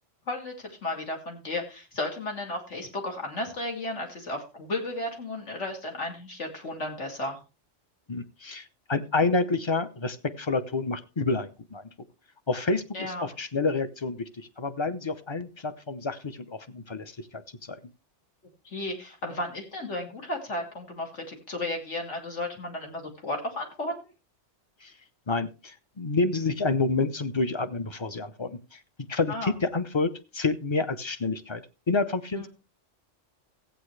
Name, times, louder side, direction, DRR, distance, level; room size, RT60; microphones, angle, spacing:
voice 1, 0.3-7.4 12.9-13.3 18.6-23.9 29.3-29.5 32.3-32.5, left 2 dB, 80° left, 1 dB, 2.9 m, -34 dB
voice 2, 8.1-11.9 12.5-17.8 24.8-24.9 25.3-28.8 29.1-32.5, left 3 dB, 30° left, 11 dB, 0.6 m, -29 dB
15.5 x 8.8 x 3.3 m, 0.31 s
omnidirectional pair, 1.2 m